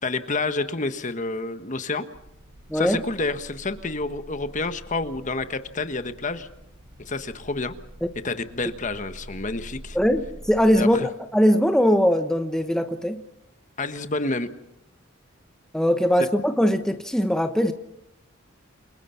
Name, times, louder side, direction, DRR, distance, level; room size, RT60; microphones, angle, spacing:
voice 1, 0.0-2.0 2.7-6.5 7.1-7.7 8.2-10.0 10.8-11.1 13.8-14.5, left 3 dB, 40° left, 10 dB, 1.4 m, -29 dB
sound 1, 2.1-10.8, right 1 dB, 70° right, 3.2 m, -45 dB
voice 2, 2.7-3.0 9.9-13.2 15.7-17.7, equal, 5° left, 7 dB, 1.0 m, -21 dB
29.0 x 22.5 x 5.8 m, 0.81 s
head